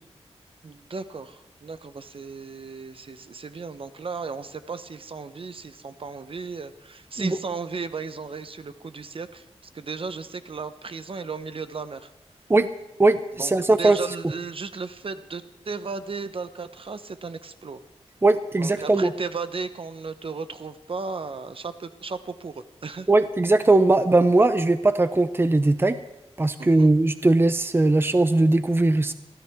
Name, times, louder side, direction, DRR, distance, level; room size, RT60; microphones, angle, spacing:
voice 1, 0.6-9.5 9.7-12.1 13.4-17.8 18.6-23.1 26.6-26.9, right 4 dB, 55° right, 11 dB, 0.9 m, -35 dB
voice 2, 13.0-14.0 18.2-19.1 23.1-26.0 26.4-29.1, right 2 dB, 20° right, 11 dB, 0.7 m, -19 dB
24.0 x 16.0 x 3.6 m, 0.89 s
wide cardioid pair, 105°, 11 cm